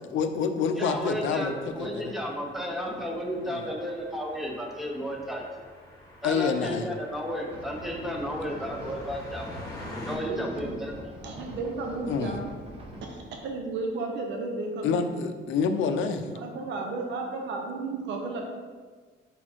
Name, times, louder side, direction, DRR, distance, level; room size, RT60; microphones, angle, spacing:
voice 1, 0.1-2.1 3.4-3.7 6.2-6.9 12.1-12.4 14.8-16.2, left 5 dB, 75° left, 8 dB, 0.5 m, -27 dB
voice 2, 0.8-5.4 6.2-9.5 10.1-10.9, equal, ahead, 0 dB, 0.8 m, -33 dB
sound 1, 0.9-10.1, left 1 dB, 15° left, 1.4 m, -46 dB
sound 2, 7.5-13.2, equal, 30° right, 1.0 m, -44 dB
voice 3, 8.6-9.0 10.2-10.8 11.2-12.5 13.0-15.0 16.3-18.4, right 3 dB, 65° right, 1 dB, 0.8 m, -34 dB
5.4 x 4.3 x 4.4 m, 1.5 s
cardioid pair, 165°, 20 cm